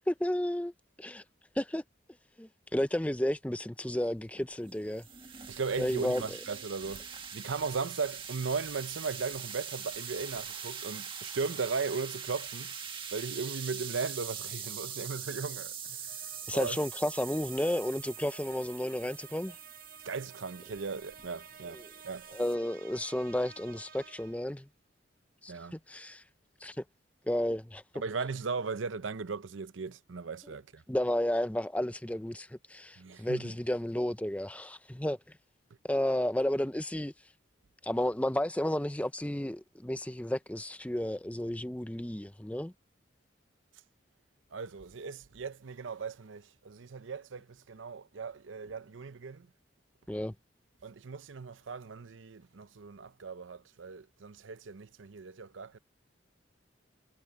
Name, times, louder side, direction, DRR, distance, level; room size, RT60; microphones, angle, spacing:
voice 1, 0.1-0.7 1.0-1.2 1.6-1.8 2.4-5.1 5.8-6.4 16.5-19.6 21.7-21.9 22.3-24.7 25.4-26.2 26.6-26.8 27.3-27.8 30.9-35.2 35.9-37.1 37.8-42.7 50.1-50.3, left 1 dB, 5° left, 0.5 m, -32 dB
sound 1, 4.3-22.5, right 7 dB, 25° right, 1.8 m, -43 dB
voice 2, 5.5-12.7 13.1-16.1 16.5-16.8 20.0-22.3 25.5-25.8 27.9-30.8 33.0-33.5 44.5-49.5 50.8-55.8, right 5 dB, 90° right, 0.7 m, -37 dB
sound 2, 16.1-24.6, right 6 dB, 50° right, 1.0 m, -54 dB
head